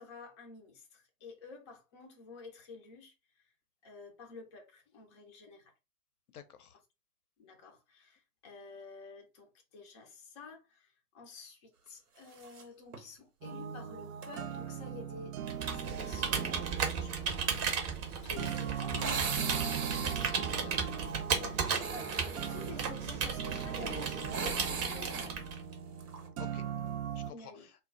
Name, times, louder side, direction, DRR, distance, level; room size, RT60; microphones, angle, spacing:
voice 1, 0.0-3.1 3.8-5.7 7.4-15.3 15.7-17.2 17.4-17.6 18.2-19.5 21.4-22.0 22.3-25.5 27.3-27.7, left 4 dB, 20° left, 0.4 m, -50 dB
voice 2, 6.3-6.8 19.9-20.8 21.6-21.7 26.4-26.6 27.2-27.5, left 8 dB, 75° left, 0.6 m, -51 dB
sound 1, 12.3-12.6 12.9-13.0 14.2-14.4 17.5-26.3, right 5 dB, 85° right, 0.8 m, -41 dB
sound 2, 13.4-27.3, right 8 dB, 65° right, 0.5 m, -40 dB
Computer keyboard, 15.4-25.7, right 6 dB, 25° right, 0.6 m, -35 dB
2.0 x 2.0 x 3.6 m
figure-of-eight pair, 115°, 45 cm